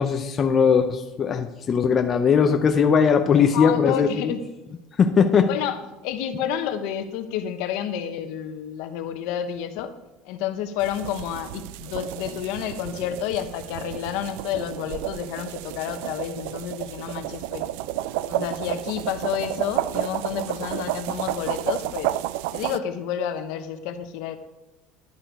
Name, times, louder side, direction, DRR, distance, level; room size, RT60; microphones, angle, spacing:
voice 1, 0.0-4.1 5.0-5.5, left 6 dB, 25° left, 6 dB, 0.6 m, -19 dB
voice 2, 3.5-4.4 5.5-5.8 6.0-9.9 10.2-17.7 18.3-22.2 22.5-24.4, left 9 dB, 65° left, 8 dB, 1.0 m, -30 dB
sound 1, 10.8-22.8, right 14 dB, 80° right, 0.4 m, -31 dB
11.5 x 8.0 x 4.7 m, 1.0 s
cardioid pair, 175°, 0 cm